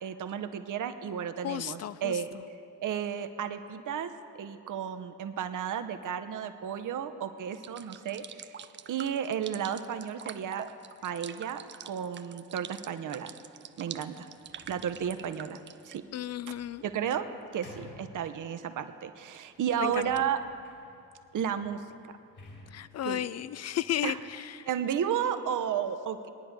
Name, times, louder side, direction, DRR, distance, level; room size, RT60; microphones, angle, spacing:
voice 1, 0.0-2.3 2.8-8.6 8.9-10.6 11.0-13.3 13.8-14.3 14.7-15.6 15.8-16.0 16.8-17.2 17.5-20.4 21.3-21.8 23.0-23.2 24.0-24.2 24.6-26.3, right 8 dB, 40° right, 9 dB, 0.8 m, -33 dB
voice 2, 1.4-2.2 16.1-16.8 19.8-19.9 22.7-24.7, left 11 dB, 35° left, 16 dB, 0.4 m, -34 dB
sound 1, 7.5-16.0, right 8 dB, 25° right, 0.4 m, -45 dB
Sliding door, 14.3-18.8 19.5-24.3, left 2 dB, 55° left, 3.0 m, -55 dB
18.5 x 9.9 x 3.7 m, 2.5 s
hypercardioid pair, 45°, 46 cm